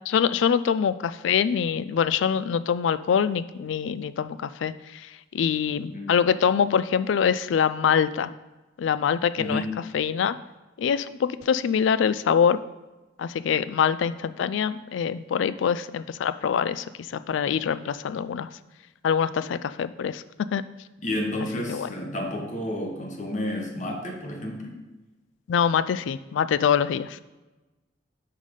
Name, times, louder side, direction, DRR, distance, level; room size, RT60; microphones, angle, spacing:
voice 1, 0.1-8.3 8.8-9.6 9.9-10.4 10.8-12.6 13.2-18.5 19.0-20.6 21.7-21.9 25.5-27.2, left 7 dB, 80° left, 15 dB, 0.3 m, -24 dB
voice 2, 9.4-9.7 21.0-24.8, left 1 dB, 40° left, 2 dB, 1.1 m, -31 dB
5.6 x 4.9 x 5.4 m, 1.1 s
head